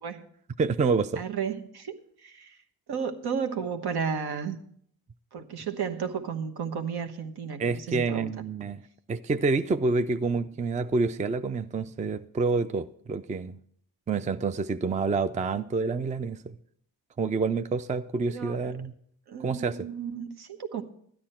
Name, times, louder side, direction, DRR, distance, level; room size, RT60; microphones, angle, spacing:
voice 1, 0.6-1.2 7.6-8.8 9.1-13.6 14.1-16.5 17.2-18.9 19.4-19.8, right 4 dB, 20° right, 12 dB, 0.4 m, -28 dB
voice 2, 1.2-2.6 2.9-4.6 5.3-8.3 18.3-18.7 19.3-20.8, right 6 dB, 70° right, 6 dB, 1.2 m, -33 dB
12.5 x 9.6 x 4.4 m, 0.64 s
cardioid pair, 80°, 40 cm